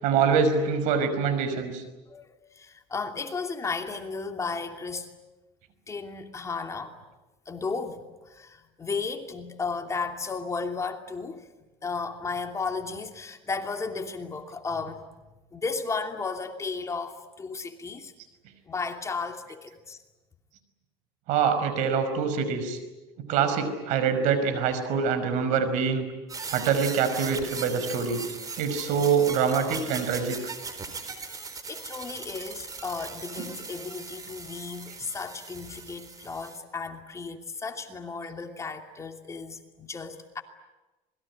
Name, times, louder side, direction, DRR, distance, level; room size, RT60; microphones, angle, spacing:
voice 1, 0.0-1.8 21.3-22.8 23.3-26.0 26.5-28.2 28.6-30.5 33.4-33.5, right 6 dB, 70° right, 10 dB, 5.4 m, -25 dB
voice 2, 2.1-5.1 5.9-7.0 7.5-11.5 11.8-15.1 15.5-18.1 18.7-20.0 31.7-40.4, left 4 dB, 25° left, 5 dB, 2.8 m, -34 dB
sound 1, 26.3-36.6, right 4 dB, 30° right, 4.1 m, -39 dB
26.5 x 21.5 x 9.9 m, 1.1 s
supercardioid pair, 110°, 13 cm